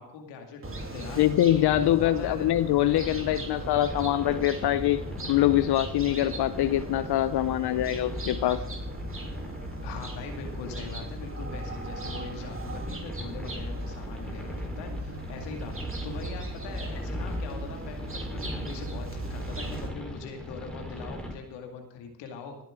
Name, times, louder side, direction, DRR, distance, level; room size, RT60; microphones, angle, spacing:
voice 1, 0.0-1.2 1.8-2.5 9.8-22.6, left 5 dB, 85° left, 4 dB, 2.2 m, -41 dB
sound 1, 0.6-19.9, right 1 dB, 30° right, 3.2 m, -37 dB
voice 2, 1.2-5.0 5.3-8.6, left 13 dB, 65° left, 13 dB, 0.7 m, -24 dB
sound 2, 2.8-21.4, left 1 dB, ahead, 4.0 m, -42 dB
18.0 x 10.0 x 3.7 m, 0.76 s
hypercardioid pair, 50°, 41 cm